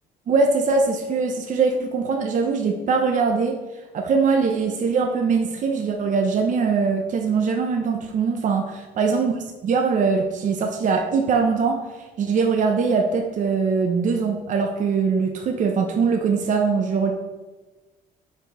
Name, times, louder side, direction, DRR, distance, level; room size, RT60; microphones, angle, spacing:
voice 1, 0.3-3.6 3.9-9.4 9.6-11.8 12.2-17.1, right 5 dB, 50° right, 2 dB, 0.9 m, -22 dB
5.9 x 4.7 x 5.5 m, 1.2 s
cardioid pair, 110°, 17 cm